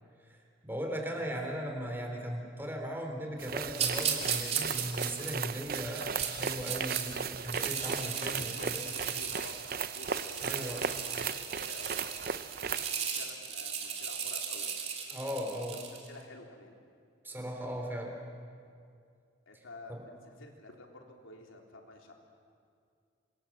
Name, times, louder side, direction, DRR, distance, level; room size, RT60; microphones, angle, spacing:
voice 1, 0.3-8.8 10.4-10.8 15.1-15.8 17.2-18.2 19.9-20.0, equal, 10° right, 2 dB, 3.6 m, -38 dB
sound 1, 3.4-12.9, right 6 dB, 45° right, 0.7 m, -37 dB
sound 2, 3.7-7.0 7.4-16.1, right 7 dB, 30° right, 2.9 m, -36 dB
voice 2, 8.4-14.7 15.7-16.8 19.5-22.1, left 2 dB, 80° left, 1 dB, 3.7 m, -51 dB
28.0 x 26.0 x 7.5 m, 2.3 s
head